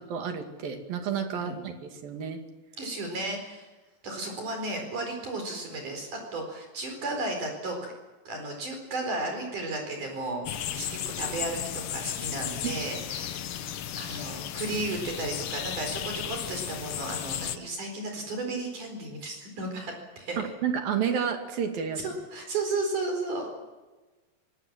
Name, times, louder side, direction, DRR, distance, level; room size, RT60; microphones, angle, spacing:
voice 1, 0.1-2.4 12.6-12.7 20.4-22.0, right 7 dB, 80° right, 5 dB, 4.2 m, -30 dB
voice 2, 2.8-3.7 4.0-7.9 8.3-13.6 14.0-20.4 22.0-23.6, right 2 dB, 60° right, 3 dB, 5.9 m, -34 dB
sound 1, 10.4-17.6, left 10 dB, 75° left, 1.3 m, -34 dB
24.5 x 20.0 x 7.6 m, 1.2 s
omnidirectional pair, 4.1 m